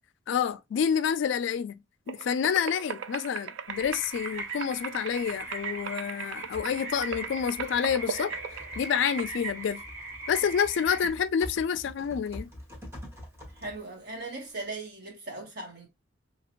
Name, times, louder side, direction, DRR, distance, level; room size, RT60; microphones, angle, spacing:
voice 1, 0.3-1.8 2.1-8.3 8.8-9.8 10.3-12.5, left 7 dB, 70° left, 0.3 m, -28 dB
sound 1, 2.1-9.3, right 7 dB, 80° right, 0.3 m, -39 dB
Typing, 3.7-14.8, left 1 dB, 15° right, 1.0 m, -48 dB
sound 2, 3.7-11.1, right 2 dB, 40° right, 1.4 m, -39 dB
voice 2, 13.5-15.9, right 2 dB, 60° right, 1.3 m, -39 dB
2.8 x 2.5 x 2.9 m
head